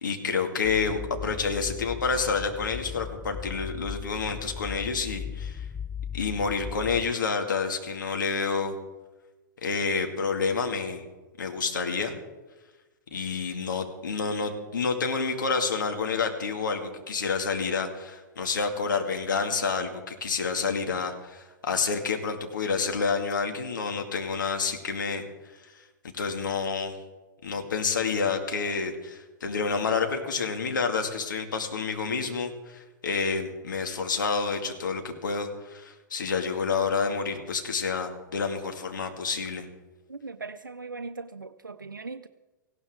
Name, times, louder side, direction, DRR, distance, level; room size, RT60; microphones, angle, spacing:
voice 1, 0.0-5.7 6.1-8.8 9.6-11.0 11.4-12.2 13.1-25.2 26.1-27.0 27.4-39.7, left 5 dB, 70° left, 4 dB, 2.2 m, -29 dB
sound 1, 0.6-7.1, left 7 dB, 10° left, 0.5 m, -38 dB
voice 2, 40.1-42.3, right 4 dB, 85° right, 8 dB, 0.6 m, -39 dB
18.5 x 16.0 x 3.7 m, 1.2 s
figure-of-eight pair, 105°, 11 cm